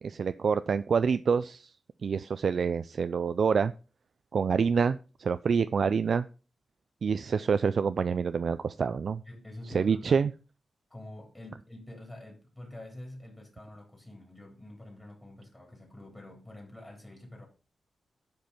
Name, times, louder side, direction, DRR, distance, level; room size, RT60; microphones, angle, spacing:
voice 1, 0.0-1.7 2.0-3.7 4.3-6.3 7.0-9.2 9.7-10.3, right 6 dB, 65° right, 12 dB, 0.4 m, -27 dB
voice 2, 9.2-10.3 10.9-17.4, left 1 dB, 10° left, -1 dB, 3.5 m, -47 dB
10.5 x 5.3 x 5.4 m, 0.35 s
cardioid pair, 80°, 0 cm